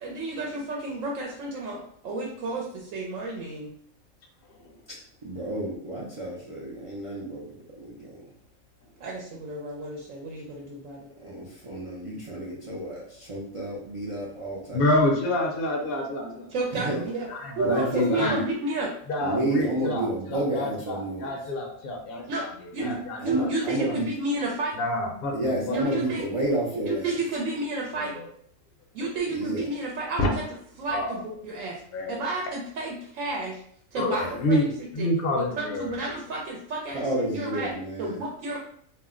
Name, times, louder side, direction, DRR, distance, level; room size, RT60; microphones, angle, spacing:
voice 1, 0.0-3.7 9.0-11.1 16.5-17.3 17.6-18.9 22.3-22.5 22.7-22.9 23.2-24.8 25.7-26.2 26.8-28.1 28.9-30.3 30.8-31.8 32.1-33.6 33.9-34.7 35.0-35.1 35.6-37.7 38.0-38.6, right 2 dB, 75° right, -1 dB, 0.9 m, -31 dB
voice 2, 5.2-7.5 7.7-8.2 11.2-14.8 16.7-17.0 17.6-18.4 19.2-21.3 22.8-24.1 25.3-27.1 29.3-29.7 36.9-38.2, right 1 dB, 55° right, -6 dB, 0.3 m, -30 dB
voice 3, 14.7-16.5 16.9-18.4 19.1-23.5 23.8-23.9 24.7-25.8 27.9-28.2 30.2-30.3 30.9-31.2 31.9-32.2 34.0-34.7 34.9-35.9, left 1 dB, 60° left, 0 dB, 0.7 m, -28 dB
2.5 x 2.0 x 3.6 m, 0.62 s
omnidirectional pair, 1.4 m